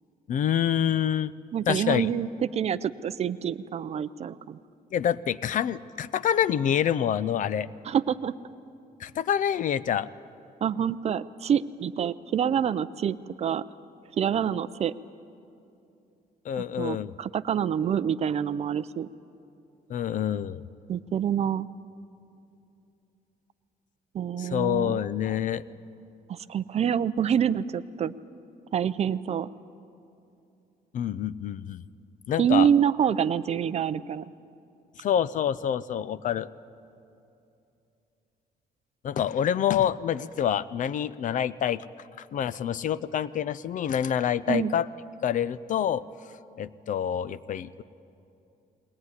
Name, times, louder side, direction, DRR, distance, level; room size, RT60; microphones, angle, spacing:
voice 1, 0.3-1.3 1.7-2.1 4.9-7.7 9.0-10.1 16.4-17.1 19.9-20.6 24.4-25.6 30.9-31.8 32.3-32.7 35.0-36.5 39.0-41.8 42.2-44.9 45.2-46.0 46.6-47.8, left 9 dB, 55° left, 17 dB, 0.5 m, -27 dB
voice 2, 1.5-4.6 7.8-8.3 10.6-13.6 14.2-14.9 16.6-19.1 20.9-21.7 24.1-25.0 26.3-28.1 28.7-29.5 32.4-34.3 44.5-44.7, right 8 dB, 40° right, 15 dB, 0.5 m, -26 dB
21.0 x 18.5 x 9.7 m, 2.7 s
cardioid pair, 160°, 16 cm